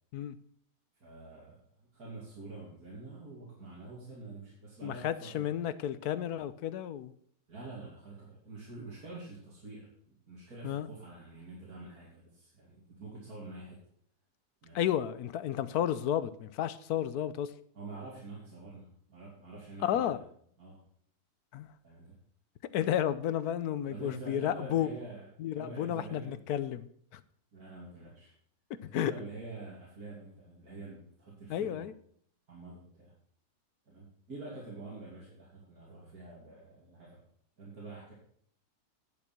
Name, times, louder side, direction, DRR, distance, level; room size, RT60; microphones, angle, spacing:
voice 1, 1.0-1.6 1.9-5.5 7.5-13.8 14.6-14.8 17.7-20.2 20.6-20.8 21.8-22.2 23.9-25.3 25.5-26.4 27.5-28.3 28.8-31.9 32.5-33.1 33.9-37.2 37.6-38.1, right 3 dB, 70° right, -6 dB, 3.1 m, -47 dB
voice 2, 4.8-7.1 10.6-10.9 14.7-17.5 19.8-20.2 21.5-21.7 22.7-24.9 25.4-27.2 28.8-29.1 31.5-31.9, left 10 dB, 75° left, 15 dB, 1.2 m, -32 dB
10.0 x 7.5 x 5.9 m, 0.63 s
omnidirectional pair, 1.7 m